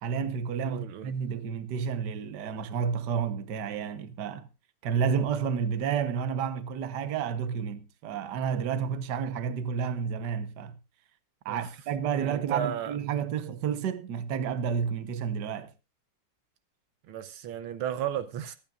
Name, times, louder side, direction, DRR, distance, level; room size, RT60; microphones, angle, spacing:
voice 1, 0.0-4.5 4.8-10.7 11.4-15.7, right 7 dB, 55° right, 1.6 m, -30 dB
voice 2, 0.7-1.1 11.5-11.7 12.1-13.0 17.1-18.6, right 9 dB, 80° right, 1.7 m, -34 dB
25.0 x 9.0 x 2.5 m
omnidirectional pair, 2.3 m